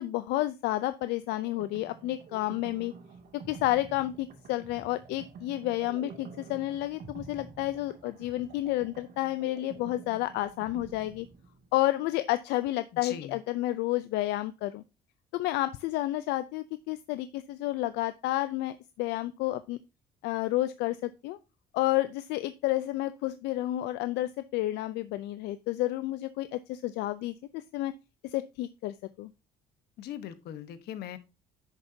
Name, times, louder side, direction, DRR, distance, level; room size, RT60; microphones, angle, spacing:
voice 1, 0.0-2.9 3.3-11.3 11.7-14.8 15.3-19.8 20.2-21.4 21.7-27.9 28.2-29.3, left 16 dB, 90° left, 12 dB, 0.5 m, -30 dB
sound 1, 1.3-11.8, right 5 dB, 70° right, 2.3 m, -49 dB
voice 2, 13.0-13.4 30.0-31.2, left 10 dB, 70° left, 12 dB, 1.1 m, -40 dB
10.0 x 6.7 x 2.7 m, 0.28 s
cardioid pair, 110°, 17 cm